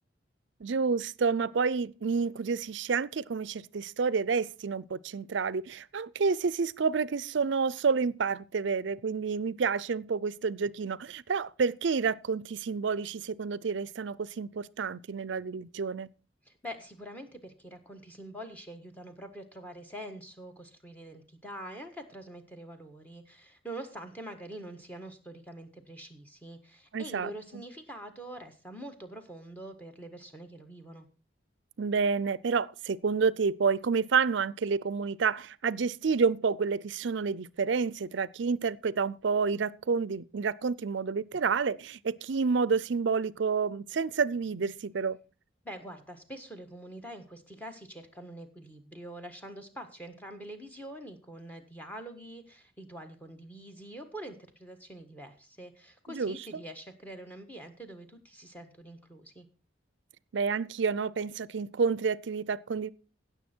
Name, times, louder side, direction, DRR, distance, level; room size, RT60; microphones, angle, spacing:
voice 1, 0.6-16.1 26.9-27.3 31.8-45.2 56.1-56.4 60.3-62.9, right 5 dB, 65° right, 0.5 m, -29 dB
voice 2, 16.4-31.1 45.6-59.5, right 1 dB, 10° left, 1.5 m, -45 dB
16.5 x 6.9 x 4.5 m
head